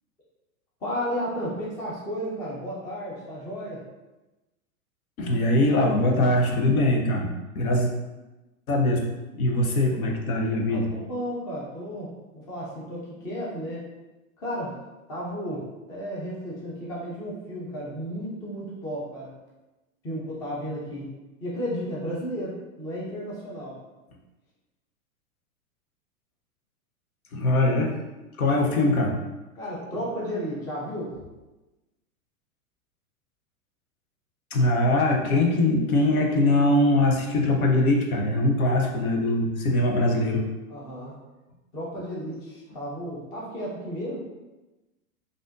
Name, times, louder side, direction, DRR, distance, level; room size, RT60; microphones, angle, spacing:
voice 1, 0.8-3.8 10.7-13.9 14.4-14.8 15.1-19.3 20.0-21.1 21.4-23.8 29.6-31.1 36.3-36.5 40.7-41.1 41.7-44.2, equal, 10° left, -5 dB, 0.3 m, -33 dB
voice 2, 5.2-7.3 7.5-7.9 8.7-10.9 27.3-28.0 28.4-29.2 34.5-40.4, left 1 dB, 75° left, 1 dB, 0.8 m, -22 dB
3.4 x 2.5 x 2.5 m, 1.1 s
hypercardioid pair, 105°, 43 cm